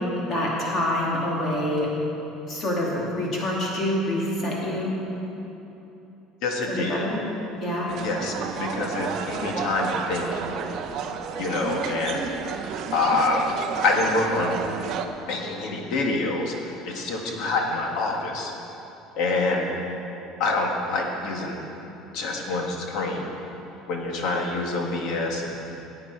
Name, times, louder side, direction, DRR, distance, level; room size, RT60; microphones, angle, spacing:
voice 1, 0.0-1.9 2.5-4.9 6.7-7.2 7.6-7.9, left 1 dB, 30° left, -3 dB, 2.5 m, -26 dB
voice 2, 6.4-7.0 8.0-10.4 11.4-12.2 12.9-13.5 13.8-14.6 15.3-18.5 19.2-19.7 20.4-21.6 22.1-23.3 23.9-25.6, left 3 dB, 50° left, 1 dB, 1.7 m, -26 dB
sound 1, 7.9-15.1, right 7 dB, 45° right, 0.7 m, -31 dB
16.0 x 8.8 x 4.7 m, 3.0 s
cardioid pair, 170°, 0 cm